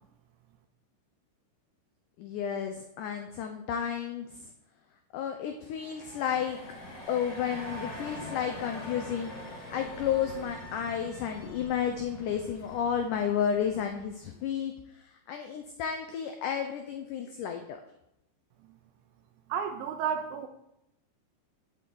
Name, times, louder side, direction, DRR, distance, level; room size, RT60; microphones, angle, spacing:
voice 1, 2.2-4.3 5.1-6.6 7.1-9.3 9.7-17.8, left 8 dB, 90° left, 5 dB, 1.8 m, -32 dB
sound 1, 5.6-14.3, left 1 dB, 60° left, 3.8 m, -44 dB
voice 2, 19.5-20.5, right 7 dB, 80° right, 6 dB, 2.2 m, -31 dB
6.8 x 6.3 x 7.7 m, 0.83 s
omnidirectional pair, 4.6 m